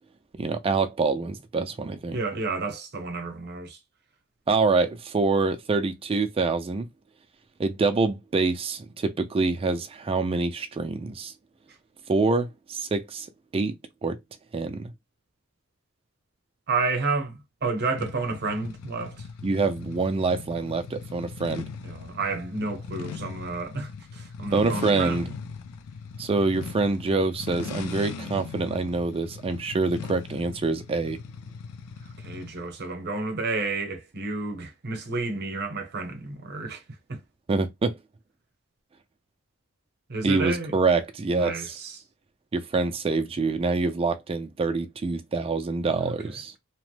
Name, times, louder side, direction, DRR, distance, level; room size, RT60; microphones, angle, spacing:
voice 1, 0.4-2.2 4.5-6.9 7.6-11.3 12.1-13.3 13.5-13.7 14.0-14.2 14.5-14.9 19.4-21.7 24.5-25.3 26.2-31.2 37.5-38.0 40.2-41.7 42.5-46.5, right 3 dB, 25° right, 0.3 m, -26 dB
voice 2, 2.1-3.8 16.7-19.3 21.8-25.3 32.2-36.8 37.1-37.2 40.1-40.7 41.4-42.0 46.0-46.6, right 3 dB, 50° right, 0.8 m, -31 dB
sound 1, 18.0-32.7, left 5 dB, 90° left, 0.5 m, -39 dB
2.9 x 2.0 x 3.1 m
head